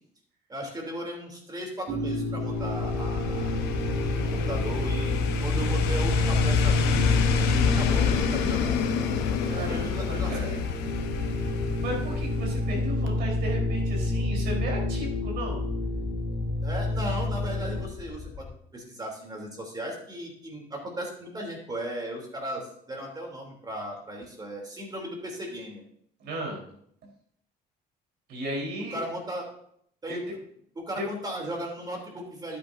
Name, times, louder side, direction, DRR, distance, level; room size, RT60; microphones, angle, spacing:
voice 1, 0.5-3.6 4.1-5.1 5.4-7.1 7.7-8.7 9.6-10.6 16.6-25.8 28.8-29.5 30.0-30.2 30.9-32.6, right 1 dB, 25° right, 0 dB, 3.2 m, -36 dB
sound 1, 1.9-17.8, left 1 dB, 60° right, 4.2 m, -28 dB
sound 2, 2.4-12.8 13.1-13.2, left 8 dB, 85° left, 1.1 m, -29 dB
sound 3, 3.6-18.6, left 6 dB, 25° left, 0.7 m, -41 dB
voice 2, 9.4-10.6 11.8-15.6 26.2-26.6 28.3-29.0 30.1-30.3 31.0-31.1, right 1 dB, 75° right, -1 dB, 4.1 m, -35 dB
11.5 x 9.4 x 2.7 m, 0.68 s
cardioid pair, 110°, 17 cm